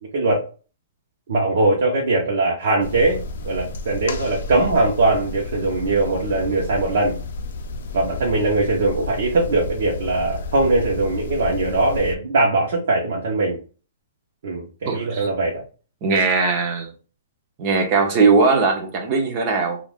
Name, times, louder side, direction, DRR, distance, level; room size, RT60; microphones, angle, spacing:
voice 1, 0.1-0.4 1.3-7.1 7.9-13.6 14.4-15.6, right 2 dB, 60° right, 0.8 m, -21 dB
sound 1, 2.8-12.2, left 3 dB, 60° left, 0.5 m, -32 dB
voice 2, 14.8-15.3 16.0-16.9 17.6-19.8, right 4 dB, 25° right, 0.6 m, -19 dB
2.4 x 2.3 x 3.4 m
hypercardioid pair, 170°, 0 cm